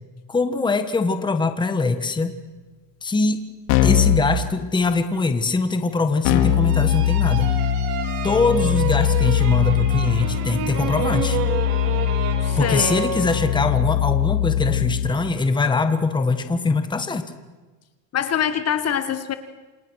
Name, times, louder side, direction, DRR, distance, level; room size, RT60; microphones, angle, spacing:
voice 1, 0.3-2.3 3.0-3.5 3.8-7.5 8.2-11.4 12.6-17.2, left 3 dB, 10° left, 8 dB, 1.5 m, -22 dB
Keyboard (musical), 3.7-4.3 6.2-15.1, left 10 dB, 75° left, 4.3 m, -21 dB
sound 1, 6.7-13.8, right 8 dB, 70° right, 4.4 m, -30 dB
voice 2, 12.4-13.1 18.1-19.3, left 9 dB, 30° left, 11 dB, 1.5 m, -24 dB
28.0 x 28.0 x 6.5 m, 1.3 s
cardioid pair, 150°, 49 cm